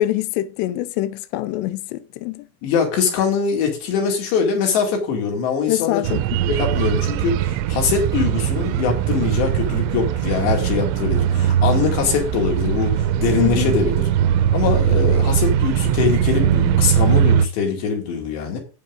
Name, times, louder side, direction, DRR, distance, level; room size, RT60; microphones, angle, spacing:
voice 1, 0.0-2.4 5.7-6.4 13.4-13.7, left 15 dB, 85° left, 2.5 m, -24 dB
voice 2, 2.6-6.0 6.5-14.1 14.5-18.6, left 5 dB, 65° left, 4.4 m, -22 dB
sound 1, 6.0-17.5, right 9 dB, 85° right, 2.8 m, -20 dB
9.7 x 8.7 x 3.7 m
omnidirectional pair, 5.7 m